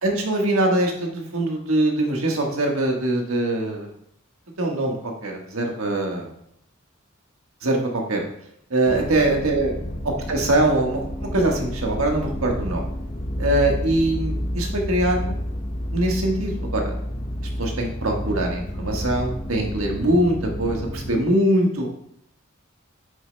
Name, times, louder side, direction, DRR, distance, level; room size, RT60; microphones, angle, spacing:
voice 1, 0.0-3.9 4.6-6.3 7.6-8.2 8.7-9.7 10.0-12.9 13.4-15.4 15.9-16.9 17.6-21.9, right 1 dB, 90° right, 1 dB, 1.4 m, -23 dB
sound 1, 8.9-21.2, equal, 30° left, 0.8 m, -30 dB
9.1 x 6.6 x 2.2 m, 0.73 s
head